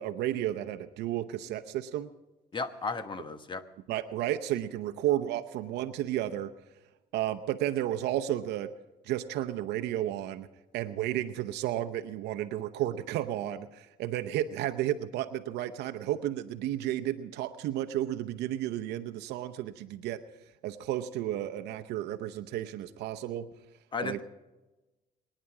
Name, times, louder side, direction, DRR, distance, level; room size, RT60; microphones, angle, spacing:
voice 1, 0.0-2.1 3.9-6.5 7.1-8.7 9.0-10.5 10.7-20.2 20.6-23.5 24.0-24.2, right 12 dB, 85° right, 8 dB, 0.8 m, -32 dB
voice 2, 2.5-3.6 23.9-24.2, left 4 dB, 30° left, 10 dB, 1.2 m, -34 dB
24.5 x 10.0 x 4.9 m, 1.1 s
cardioid pair, 110°, 17 cm